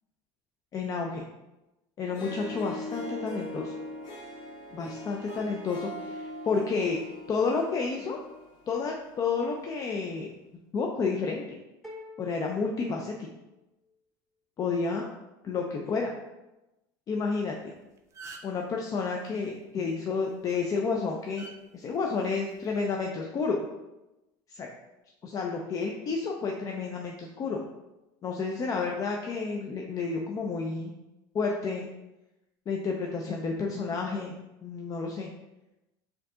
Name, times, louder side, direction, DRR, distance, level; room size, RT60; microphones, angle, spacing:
voice 1, 0.7-1.2 2.0-3.7 4.7-7.0 7.3-8.2 8.7-10.3 10.7-11.4 12.2-13.3 14.6-15.0 15.4-16.1 17.1-17.7 18.4-21.5 21.7-23.6 24.5-24.7 25.2-27.6 28.2-30.9 31.3-31.9 32.7-34.3 34.6-35.3, left 4 dB, 35° left, 0 dB, 0.5 m, -30 dB
Harp, 2.0-9.4, left 1 dB, 55° left, 1.0 m, -41 dB
sound 1, 11.8-13.8, left 2 dB, ahead, 0.8 m, -48 dB
sound 2, 17.6-17.7 18.0-18.6 20.3-20.5 21.4-21.5 22.6-22.8, right 3 dB, 30° right, 0.5 m, -45 dB
4.4 x 2.8 x 3.6 m, 0.99 s
supercardioid pair, 110°, 10 cm